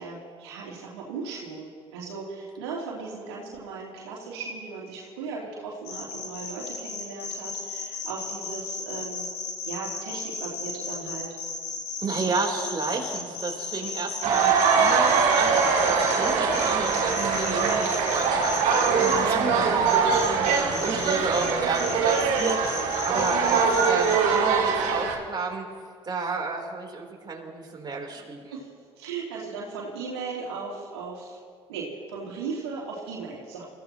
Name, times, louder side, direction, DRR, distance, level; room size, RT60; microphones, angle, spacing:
voice 1, 0.0-9.3 9.7-11.3 28.5-28.7 29.0-31.4 31.7-33.7, right 4 dB, 80° right, -4 dB, 3.1 m, -37 dB
sound 1, 5.8-19.1 19.9-21.5 21.7-24.3, left 5 dB, 80° left, 4.6 m, -34 dB
voice 2, 12.0-25.7 26.1-28.6, right 4 dB, 30° right, 0 dB, 3.7 m, -32 dB
sound 2, 14.2-25.2, right 5 dB, 65° right, 2.6 m, -23 dB
Female speech woman speaking, 17.1-17.8 18.9-20.4 20.9-21.8, right 6 dB, 50° right, 1.8 m, -38 dB
29.5 x 15.5 x 3.0 m, 2.2 s
hypercardioid pair, 55°, 14 cm